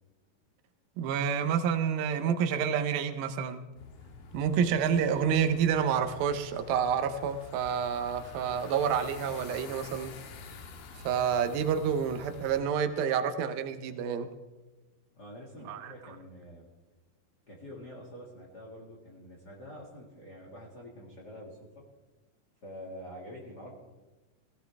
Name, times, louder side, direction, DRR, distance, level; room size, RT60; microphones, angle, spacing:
voice 1, 1.0-3.6 4.3-10.1 11.0-14.3 15.7-15.9, right 7 dB, 80° right, 9 dB, 2.6 m, -28 dB
sound 1, 3.8-12.6, left 4 dB, 80° left, 3.0 m, -47 dB
voice 2, 15.1-16.7 17.5-21.8 22.6-23.7, equal, 35° left, -2 dB, 1.9 m, -46 dB
17.0 x 16.0 x 3.5 m, 1.1 s
omnidirectional pair, 4.3 m